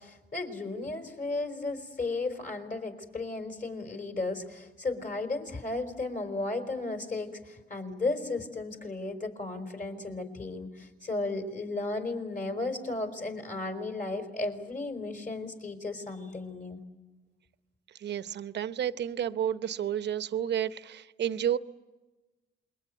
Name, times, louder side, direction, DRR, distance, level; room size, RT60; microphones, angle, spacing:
voice 1, 0.0-16.8, left 2 dB, 40° left, 6 dB, 4.6 m, -34 dB
voice 2, 18.0-21.6, right 9 dB, 60° right, 14 dB, 0.9 m, -31 dB
28.0 x 22.5 x 9.3 m, 1.2 s
cardioid pair, 90°, 20 cm